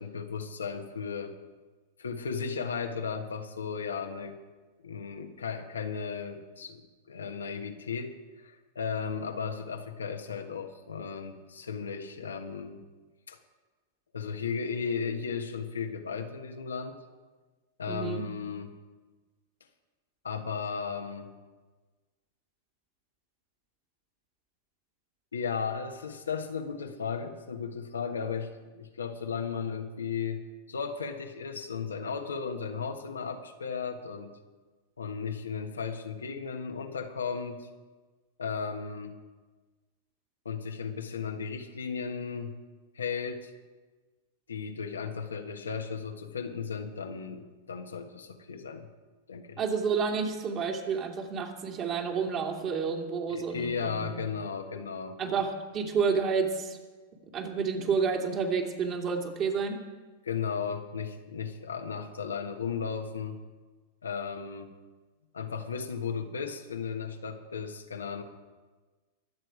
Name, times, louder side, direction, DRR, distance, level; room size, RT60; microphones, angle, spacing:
voice 1, 0.0-1.3 2.0-4.4 4.8-12.8 13.3-13.4 14.1-17.0 17.8-18.8 20.2-21.3 25.3-30.4 30.7-34.4 35.0-37.7 38.4-39.2 40.4-42.6 42.9-43.5 44.5-48.9 49.3-49.6 53.3-55.2 60.2-63.4 64.0-64.7 65.3-68.2, left 6 dB, 90° left, 5 dB, 1.4 m, -35 dB
voice 2, 17.9-18.2 49.6-54.1 55.2-56.8 57.3-59.8, right 5 dB, 35° right, 2 dB, 2.6 m, -30 dB
23.0 x 7.9 x 4.9 m, 1.3 s
hypercardioid pair, 105°, 0 cm